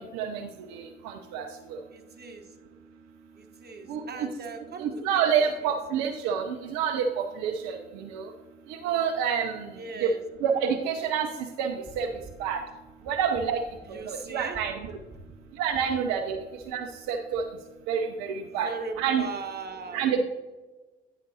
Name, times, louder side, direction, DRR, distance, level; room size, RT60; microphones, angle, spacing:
voice 1, 0.0-1.8 3.9-4.3 4.8-8.3 8.7-9.7 10.0-10.1 10.4-11.3 11.6-12.1 12.4-12.6 13.1-13.6 13.9-14.7 15.6-16.4 16.7-17.4 17.9-18.7 19.0-19.2 19.9-20.2, right 7 dB, 70° right, 4 dB, 0.6 m, -28 dB
voice 2, 1.9-2.5 3.4-4.9 5.4-5.5 9.7-10.2 13.8-14.6 18.4-20.0, right 4 dB, 35° right, 4 dB, 1.2 m, -39 dB
9.4 x 5.9 x 2.8 m, 1.2 s
hypercardioid pair, 50°, 29 cm